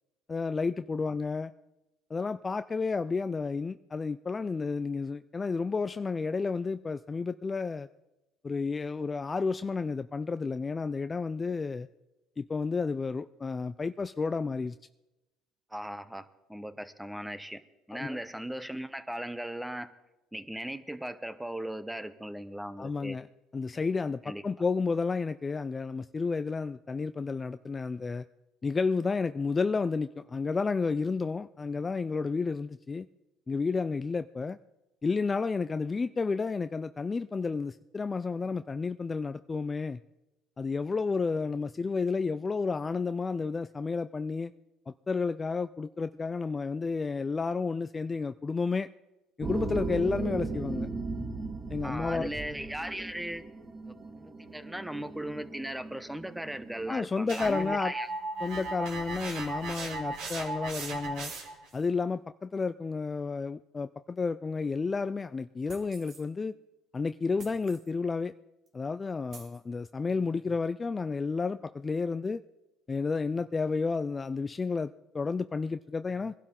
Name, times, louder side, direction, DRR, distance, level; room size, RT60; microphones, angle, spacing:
voice 1, 0.3-1.5 2.1-7.9 8.4-11.9 12.4-14.8 17.9-18.2 22.8-23.3 23.5-28.2 28.6-33.1 33.5-34.6 35.0-40.0 40.6-44.5 44.9-48.9 49.4-50.9 51.7-52.3 56.9-57.9 58.4-61.3 61.7-66.5 66.9-68.3 68.7-72.4 72.9-76.3, left 4 dB, 25° left, 12 dB, 0.4 m, -31 dB
voice 2, 15.7-17.6 17.9-19.9 20.3-23.2 24.2-24.4 51.8-53.4 53.8-58.1, right 1 dB, 5° right, 12 dB, 0.9 m, -38 dB
sound 1, 49.4-57.0, right 3 dB, 25° right, 2.0 m, -37 dB
sound 2, 57.3-61.7, right 3 dB, 75° right, 3.6 m, -36 dB
sound 3, 65.7-66.3 67.4-67.9 68.7-68.8 69.3-69.6, right 4 dB, 50° right, 2.4 m, -51 dB
21.0 x 12.0 x 3.8 m, 0.98 s
cardioid pair, 105°, 0 cm